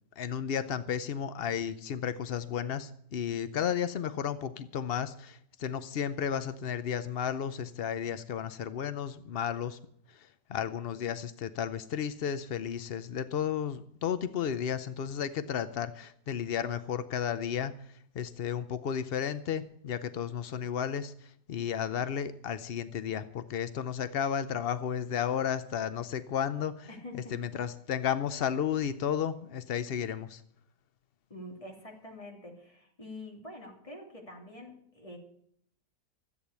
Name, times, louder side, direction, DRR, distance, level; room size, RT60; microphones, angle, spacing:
voice 1, 0.2-9.8 10.1-17.8 18.1-26.9 27.1-30.4, left 8 dB, 70° left, 12 dB, 0.5 m, -33 dB
voice 2, 26.9-27.3 31.3-35.2, left 1 dB, 20° left, 0 dB, 3.1 m, -46 dB
13.5 x 8.6 x 8.1 m, 0.68 s
omnidirectional pair, 1.8 m